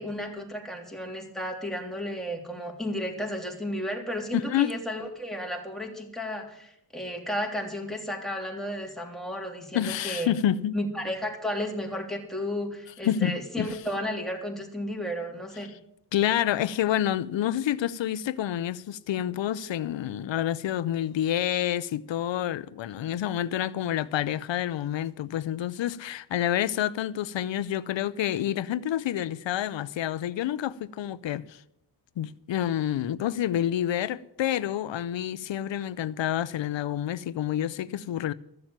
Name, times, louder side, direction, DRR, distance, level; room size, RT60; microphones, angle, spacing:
voice 1, 0.0-10.3 10.7-15.7, equal, ahead, 3.2 m, -33 dB
voice 2, 4.3-4.7 9.7-10.8 13.0-13.7 16.1-31.6 32.2-38.3, left 11 dB, 85° left, 0.6 m, -28 dB
14.0 x 7.2 x 8.9 m
cardioid pair, 65°, 44 cm